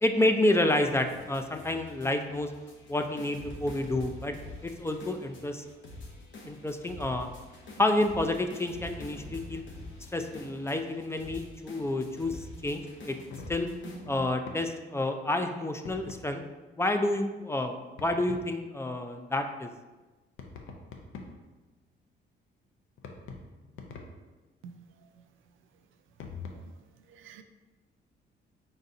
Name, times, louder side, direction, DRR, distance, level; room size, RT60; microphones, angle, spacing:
voice 1, 0.0-2.6 2.9-4.4 4.6-5.6 6.5-7.3 7.8-9.7 10.1-13.2 13.5-13.7 14.1-16.4 16.8-19.7, left 1 dB, 15° left, 6 dB, 0.4 m, -29 dB
sound 1, 0.8-14.0, left 2 dB, 65° left, 1.0 m, -46 dB
sound 2, 12.8-14.7 15.8-16.3 18.0-18.5 20.4-21.5 23.0-24.3 26.2-26.5, left 3 dB, 85° left, 0.6 m, -44 dB
voice 2, 27.1-27.4, right 6 dB, 80° right, 8 dB, 0.4 m, -49 dB
4.9 x 3.9 x 2.6 m, 1.2 s
cardioid pair, 90°, 20 cm